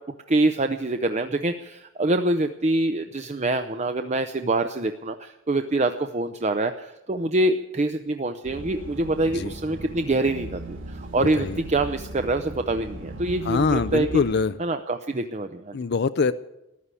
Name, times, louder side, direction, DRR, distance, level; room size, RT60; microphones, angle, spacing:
voice 1, 0.3-14.2 14.6-15.8, right 2 dB, 30° right, 7 dB, 0.6 m, -25 dB
sound 1, 8.4-14.4, right 1 dB, 65° right, 2.7 m, -38 dB
voice 2, 11.2-11.6 13.4-14.5 15.7-16.3, left 4 dB, 50° left, 13 dB, 0.5 m, -24 dB
14.5 x 11.0 x 8.3 m, 0.92 s
head